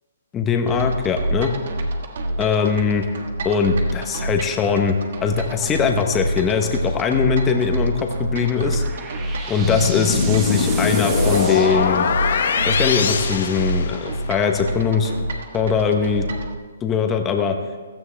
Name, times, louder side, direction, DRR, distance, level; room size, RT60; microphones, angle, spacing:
voice 1, 0.3-1.5 2.4-3.0 3.4-5.0 5.2-8.8 9.5-12.0 12.6-15.1 15.5-16.2 16.8-17.6, left 6 dB, 15° left, 4 dB, 1.0 m, -21 dB
sound 1, 0.7-16.5, right 1 dB, 60° right, 1.5 m, -27 dB
sound 2, 8.3-12.6, right 5 dB, 20° right, 1.3 m, -35 dB
sound 3, 9.6-14.4, left 6 dB, 65° left, 1.1 m, -22 dB
16.5 x 12.5 x 3.4 m, 1.4 s
hypercardioid pair, 160°, 0 cm